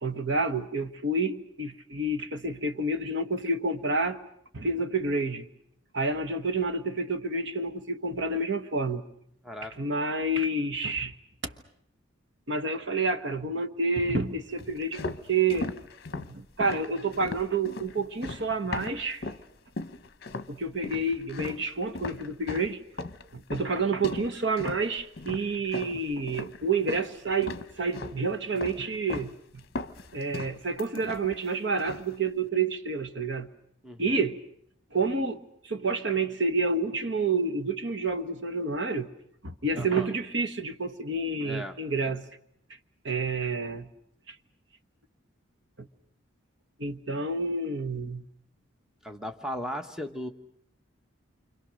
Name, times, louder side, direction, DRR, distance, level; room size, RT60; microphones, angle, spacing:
voice 1, 0.0-4.2 4.5-5.5 5.9-9.0 9.8-11.1 11.4-11.5 12.5-15.7 16.1-19.2 20.5-22.8 23.3-29.6 30.1-33.5 34.0-34.4 34.9-39.1 39.4-42.2 43.0-43.9 44.3-44.4 45.8-45.9 46.8-48.2, right 3 dB, 60° right, 1.3 m, -29 dB
voice 2, 9.4-9.8 33.8-34.2 39.7-40.1 41.4-41.8 49.0-50.3, equal, 5° right, 1.2 m, -37 dB
sound 1, 14.6-19.5 19.8-20.5 20.8-27.1 27.4-28.2 28.6-29.3 29.6-31.5 31.8-32.1, left 3 dB, 50° left, 1.0 m, -38 dB
28.5 x 25.5 x 6.5 m
head